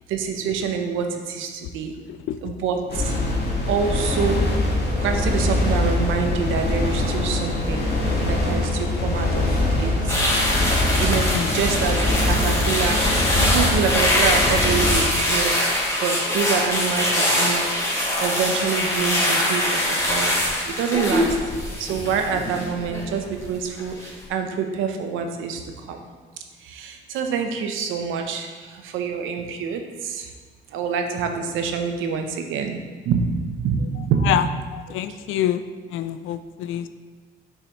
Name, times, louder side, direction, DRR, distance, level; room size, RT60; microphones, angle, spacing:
voice 1, 0.1-2.0 2.4-3.1 3.7-4.5 5.0-7.9 8.2-10.2 11.0-13.1 13.4-17.6 18.2-20.4 20.6-21.3 21.8-26.0 26.6-30.3 30.7-32.8 33.1-34.3, right 6 dB, 90° right, 5 dB, 0.7 m, -26 dB
voice 2, 2.1-2.6 11.3-11.5 20.5-20.6 34.2-34.5 34.7-35.6 35.9-36.9, left 11 dB, 85° left, 12 dB, 0.4 m, -26 dB
sound 1, 2.9-14.9, left 2 dB, 55° left, 1.8 m, -23 dB
sound 2, 4.9-9.9, equal, 30° right, 1.1 m, -38 dB
sound 3, 10.1-23.4 23.8-24.1, left 1 dB, 15° left, 1.8 m, -23 dB
7.2 x 5.7 x 3.0 m, 1.4 s
cardioid pair, 90°, 20 cm